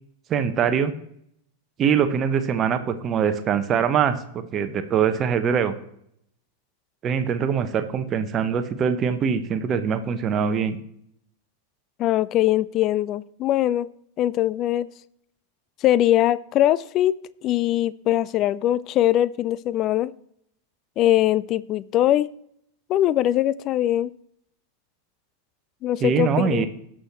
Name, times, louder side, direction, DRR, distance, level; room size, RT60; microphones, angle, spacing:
voice 1, 0.3-0.9 1.8-5.7 7.0-10.8 26.0-26.7, right 7 dB, 30° right, 1.0 m, -23 dB
voice 2, 12.0-13.9 14.2-14.9 15.8-17.1 17.4-20.1 21.0-22.3 22.9-24.1 25.8-26.6, left 13 dB, 35° left, 0.3 m, -21 dB
18.0 x 6.3 x 3.0 m
figure-of-eight pair, 90°, 0 cm